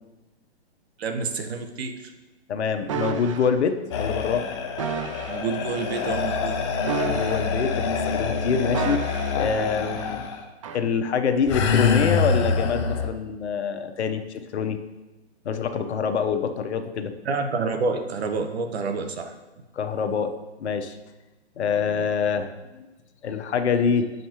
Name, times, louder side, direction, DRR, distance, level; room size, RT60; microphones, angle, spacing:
voice 1, 1.0-1.9 5.3-6.6 17.2-19.3, right 4 dB, 65° right, 6 dB, 1.0 m, -28 dB
voice 2, 2.5-4.5 7.0-9.0 9.3-10.3 10.7-14.8 15.4-17.1 19.7-20.3 20.6-21.0 21.6-22.9 23.2-24.1, left 6 dB, 75° left, 8 dB, 0.8 m, -25 dB
sound 1, 2.9-3.5 4.8-5.4 6.8-7.7 8.7-9.5 10.6-10.9, right 6 dB, 30° right, 0.4 m, -31 dB
sound 2, 3.9-10.4 11.4-13.1, left 5 dB, 25° left, 0.5 m, -26 dB
7.3 x 5.3 x 2.9 m, 1.1 s
hypercardioid pair, 145°, 34 cm